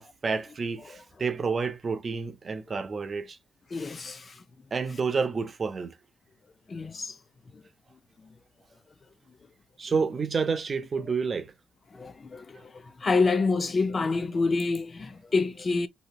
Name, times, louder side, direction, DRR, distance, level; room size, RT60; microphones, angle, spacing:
voice 1, 0.0-3.4 4.7-6.0 9.8-11.5 12.5-12.6, right 5 dB, 40° right, 0.5 m, -29 dB
voice 2, 3.7-4.4 6.7-7.2 11.9-15.9, left 4 dB, 35° left, 0.4 m, -27 dB
2.8 x 2.8 x 2.2 m
cardioid pair, 90°, 0 cm